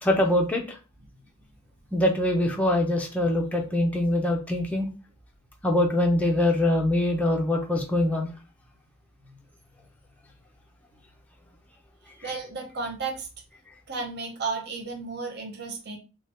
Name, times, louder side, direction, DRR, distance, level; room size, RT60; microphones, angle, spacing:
voice 1, 0.0-0.8 1.9-4.9 5.6-8.3, left 1 dB, 5° left, 0 dB, 0.5 m, -23 dB
voice 2, 12.2-13.3 13.9-16.0, right 4 dB, 45° right, 2 dB, 0.6 m, -33 dB
2.6 x 2.3 x 3.4 m, 0.32 s
head